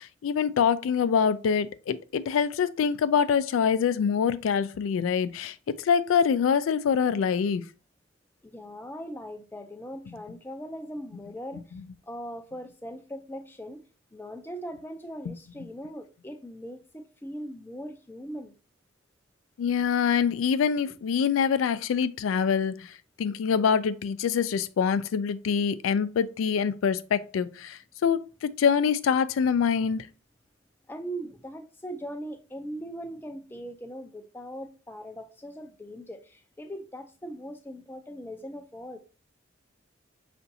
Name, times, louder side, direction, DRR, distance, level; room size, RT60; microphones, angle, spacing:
voice 1, 0.0-7.6 15.3-15.4 19.6-30.1, left 6 dB, 85° left, 0.3 m, -25 dB
voice 2, 8.4-11.6 12.1-13.8 14.1-18.5 30.9-39.0, equal, 10° left, 0.4 m, -40 dB
5.6 x 2.5 x 2.6 m
head